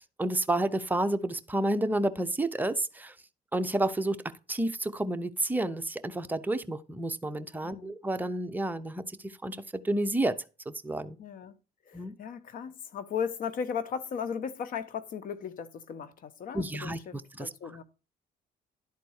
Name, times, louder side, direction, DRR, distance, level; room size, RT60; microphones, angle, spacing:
voice 1, 0.0-3.1 3.5-4.2 4.5-11.2 11.9-12.1 16.5-17.5, right 1 dB, 10° right, 0.8 m, -30 dB
voice 2, 11.2-11.5 11.9-17.8, left 7 dB, 55° left, 1.0 m, -36 dB
11.5 x 4.1 x 6.4 m
cardioid pair, 110°, 17 cm